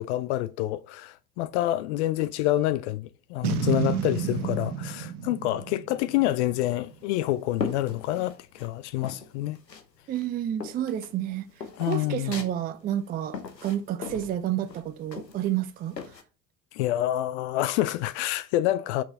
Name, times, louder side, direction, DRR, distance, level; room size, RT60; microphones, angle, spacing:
voice 1, 0.0-9.6 11.8-12.3 16.7-19.0, left 15 dB, 50° left, 0.4 m, -27 dB
Boom, 3.4-6.8, right 7 dB, 65° right, 1.0 m, -30 dB
sound 1, 6.9-8.7 9.0-9.9 10.2-16.2, left 5 dB, 90° left, 0.9 m, -39 dB
voice 2, 10.1-16.2, right 11 dB, 20° right, 0.4 m, -30 dB
5.9 x 5.5 x 4.0 m
figure-of-eight pair, 70°, 48 cm